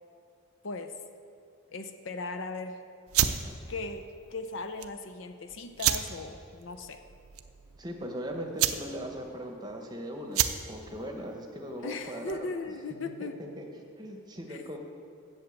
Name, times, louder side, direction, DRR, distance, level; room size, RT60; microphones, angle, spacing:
voice 1, 0.6-1.0 1.7-2.8 3.7-7.0 11.8-13.4 14.5-14.6, left 3 dB, 60° left, 7 dB, 0.6 m, -38 dB
sound 1, 3.1-12.6, right 10 dB, 85° right, 0.5 m, -32 dB
voice 2, 7.8-12.5 13.0-13.3 13.6-13.7 14.0-14.8, equal, 20° right, 2 dB, 1.0 m, -39 dB
8.2 x 7.2 x 8.2 m, 2.5 s
head